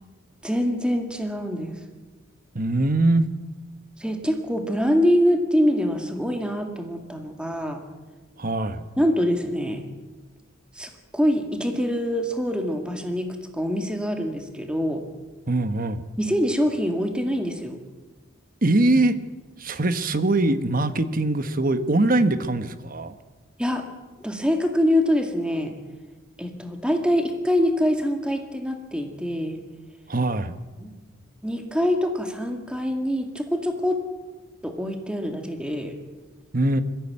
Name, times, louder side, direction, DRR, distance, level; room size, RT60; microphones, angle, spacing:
voice 1, 0.4-1.8 4.0-7.8 9.0-9.8 10.8-15.0 16.2-17.8 23.6-23.9 24.2-25.8 26.4-29.6 30.8-30.9 31.4-34.0 34.6-36.0, equal, 5° right, 5 dB, 2.0 m, -24 dB
voice 2, 2.5-3.3 8.4-8.8 15.5-16.0 18.6-19.2 19.6-23.1 30.1-30.6 36.5-36.8, right 2 dB, 45° right, 11 dB, 1.2 m, -22 dB
21.5 x 15.0 x 8.7 m, 1.2 s
head